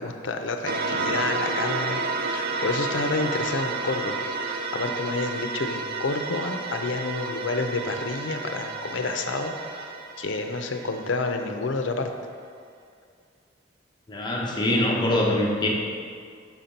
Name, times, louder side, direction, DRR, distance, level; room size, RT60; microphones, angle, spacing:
voice 1, 0.0-2.0 2.3-12.1, left 3 dB, 75° left, 5 dB, 0.5 m, -29 dB
sound 1, 0.7-11.3, right 4 dB, 50° right, 0.5 m, -31 dB
voice 2, 14.1-15.7, left 1 dB, 25° left, -2 dB, 0.7 m, -23 dB
6.0 x 4.3 x 5.2 m, 2.2 s
head